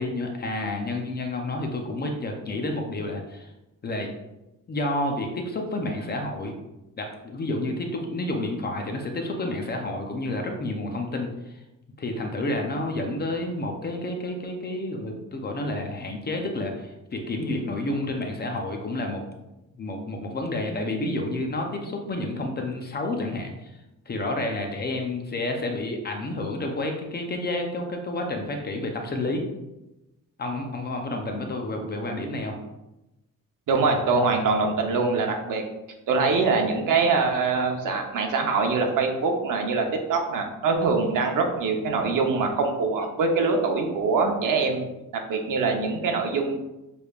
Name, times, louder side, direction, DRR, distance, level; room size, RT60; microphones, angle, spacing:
voice 1, 0.0-3.5 3.8-4.1 4.7-6.6 7.0-11.6 12.0-19.2 19.8-23.7 24.1-29.4 30.4-32.6, left 2 dB, 30° left, 3 dB, 0.5 m, -30 dB
voice 2, 33.7-35.6 36.1-44.8 45.3-46.6, right 4 dB, 70° right, 3 dB, 0.8 m, -23 dB
6.9 x 3.2 x 2.3 m, 0.96 s
wide cardioid pair, 170°, 33 cm